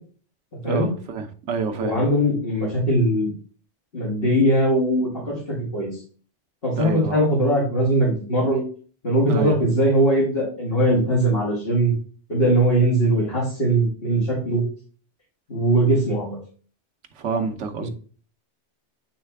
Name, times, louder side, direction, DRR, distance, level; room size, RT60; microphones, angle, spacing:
voice 1, 0.7-2.0 6.8-7.2 9.3-9.6 17.2-17.9, right 5 dB, 75° right, 6 dB, 1.1 m, -28 dB
voice 2, 1.8-3.3 3.9-6.0 6.6-8.6 9.0-11.9 12.3-14.6 15.5-16.4, right 1 dB, 55° left, -6 dB, 2.2 m, -20 dB
8.7 x 3.2 x 3.4 m, 0.41 s
omnidirectional pair, 1.2 m